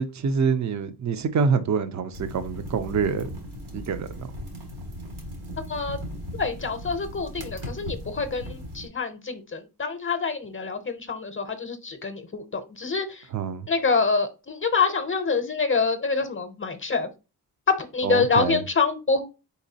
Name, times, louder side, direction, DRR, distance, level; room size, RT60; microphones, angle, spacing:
voice 1, 0.0-3.3 3.7-4.3 13.3-13.7 18.0-18.6, right 5 dB, 50° right, 0.5 m, -26 dB
sound 1, 2.1-8.9, equal, 85° right, 1.7 m, -37 dB
voice 2, 6.4-13.2 13.7-17.1 17.9-19.2, left 4 dB, 35° left, 0.6 m, -26 dB
4.5 x 4.1 x 2.7 m
wide cardioid pair, 100°, 38 cm